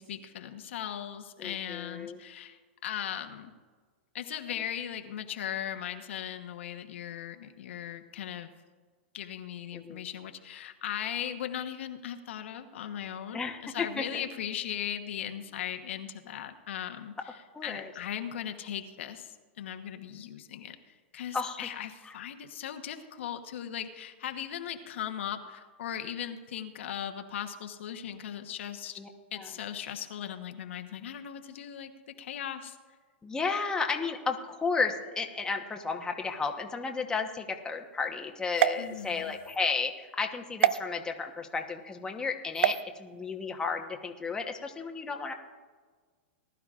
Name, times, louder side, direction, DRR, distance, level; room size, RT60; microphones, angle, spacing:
voice 1, 0.0-3.5 4.1-8.5 9.1-17.1 17.6-29.0 29.3-31.9 32.2-32.8 38.8-39.3, left 10 dB, 70° left, 6 dB, 1.1 m, -38 dB
voice 2, 1.4-2.2 9.7-10.0 13.3-14.2 17.5-17.9 21.3-21.7 22.0-22.1 29.0-29.1 29.3-29.5 33.2-45.3, left 4 dB, 10° left, 3 dB, 1.1 m, -33 dB
sound 1, 38.5-39.6 40.6-40.8 42.5-42.8, right 11 dB, 70° right, 0.5 m, -27 dB
19.5 x 11.5 x 2.5 m, 1.5 s
hypercardioid pair, 125°, 7 cm